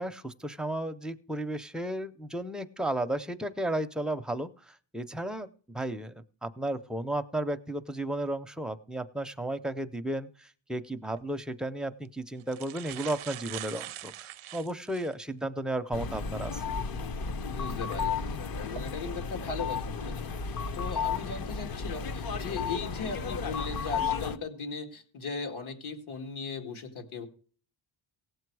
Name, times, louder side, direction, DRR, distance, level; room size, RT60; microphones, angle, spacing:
voice 1, 0.0-6.1 6.4-16.6, right 1 dB, ahead, 7 dB, 0.5 m, -34 dB
sound 1, 11.0-11.2 12.0-12.1 12.4-15.2 15.8-15.9 17.7-17.9 18.5-18.8, right 15 dB, 75° right, 0.6 m, -42 dB
sound 2, 15.9-24.4, left 5 dB, 45° left, 0.8 m, -33 dB
voice 2, 17.4-20.2 20.7-27.3, left 4 dB, 75° left, 5 dB, 2.4 m, -38 dB
17.0 x 7.8 x 4.7 m, 0.43 s
wide cardioid pair, 170°, 49 cm